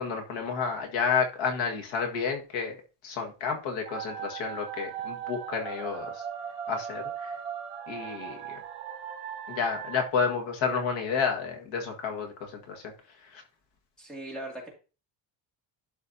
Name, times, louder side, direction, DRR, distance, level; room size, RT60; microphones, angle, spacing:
voice 1, 0.0-2.8 3.0-6.2 6.7-7.3 7.9-8.6 9.5-12.8 13.2-13.4, left 6 dB, 75° left, 3 dB, 1.8 m, -30 dB
sound 1, 3.8-10.1, right 8 dB, 15° right, 4.3 m, -38 dB
voice 2, 14.0-14.7, right 1 dB, ahead, -2 dB, 2.2 m, -39 dB
12.0 x 4.4 x 2.7 m, 0.34 s
cardioid pair, 180°, 46 cm